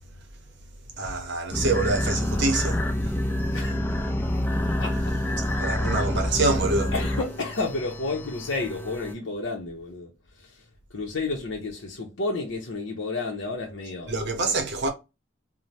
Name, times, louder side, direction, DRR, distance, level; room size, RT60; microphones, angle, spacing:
voice 1, 1.0-3.2 5.4-6.9 14.1-14.9, right 3 dB, 60° right, 0.7 m, -26 dB
sound 1, 1.5-9.1, left 1 dB, 10° left, 0.4 m, -27 dB
voice 2, 3.5-5.2 6.9-10.6 10.9-14.2, left 3 dB, 65° left, 0.6 m, -32 dB
2.6 x 2.1 x 3.1 m
head